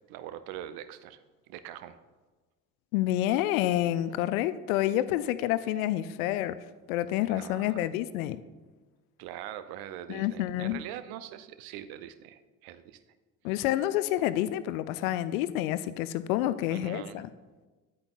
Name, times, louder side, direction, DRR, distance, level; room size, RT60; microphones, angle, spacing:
voice 1, 0.1-1.2 1.5-2.0 7.3-7.8 9.2-13.0 13.5-13.6 16.7-17.2, right 11 dB, 50° right, 12 dB, 0.6 m, -43 dB
voice 2, 2.9-6.6 6.9-8.4 10.1-10.8 13.4-17.3, left 13 dB, 60° left, 15 dB, 0.5 m, -28 dB
9.7 x 8.6 x 2.4 m, 1.3 s
figure-of-eight pair, 50°, 47 cm